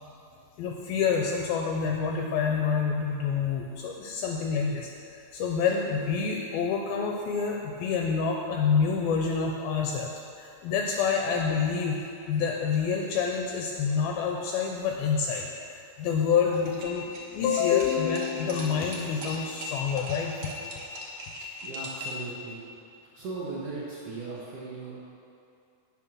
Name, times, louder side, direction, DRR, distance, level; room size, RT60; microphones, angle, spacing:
voice 1, 0.6-10.1 10.4-12.0 12.3-15.5 16.0-20.3, left 6 dB, 80° left, 1 dB, 2.3 m, -27 dB
sound 1, 16.5-22.3, left 1 dB, 60° right, 1.9 m, -39 dB
voice 2, 21.6-22.6 23.1-25.0, right 3 dB, 90° right, -5 dB, 1.3 m, -37 dB
8.6 x 7.5 x 6.1 m, 2.6 s
omnidirectional pair, 4.6 m